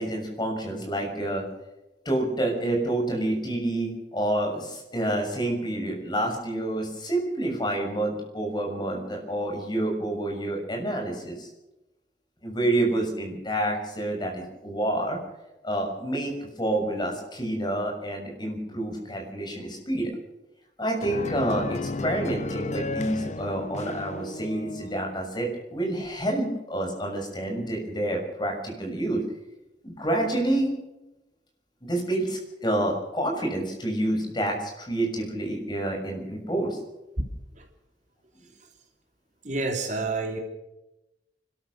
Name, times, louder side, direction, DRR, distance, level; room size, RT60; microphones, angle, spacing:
voice 1, 0.0-1.4 2.0-11.5 12.4-15.2 15.6-20.1 20.8-29.2 29.8-30.7 31.8-36.8, right 1 dB, 25° left, 1 dB, 6.6 m, -28 dB
sound 1, 21.0-25.2, left 2 dB, 40° left, 0.7 m, -33 dB
voice 2, 39.4-40.4, right 3 dB, 45° right, 3 dB, 3.1 m, -29 dB
30.0 x 13.0 x 6.6 m, 0.97 s
head